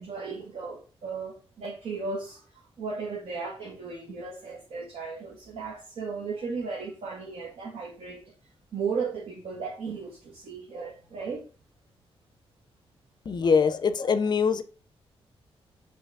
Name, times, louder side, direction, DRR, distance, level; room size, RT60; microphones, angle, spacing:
voice 1, 0.0-2.4 2.8-8.2 8.7-11.4, right 4 dB, 80° right, 1.2 m, -35 dB
voice 2, 13.3-14.6, left 5 dB, 45° left, 0.5 m, -23 dB
4.6 x 3.0 x 3.4 m
wide cardioid pair, 130°, 10 cm